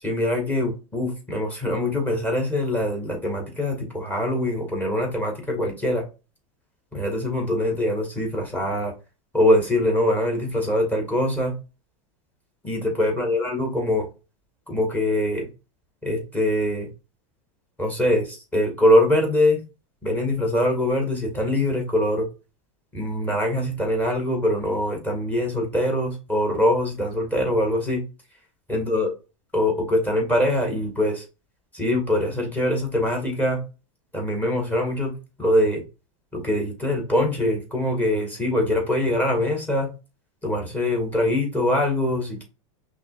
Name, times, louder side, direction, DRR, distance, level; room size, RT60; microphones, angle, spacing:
voice 1, 0.0-6.0 6.9-8.9 9.3-11.6 12.6-14.1 14.7-15.5 16.0-16.9 17.8-19.6 20.0-22.3 22.9-28.0 28.7-29.1 29.5-31.2 31.7-33.6 34.1-35.8 36.3-39.9 40.4-42.4, left 1 dB, 10° left, 2 dB, 1.9 m, -23 dB
5.7 x 3.1 x 2.5 m, 0.31 s
hypercardioid pair, 120°, 16 cm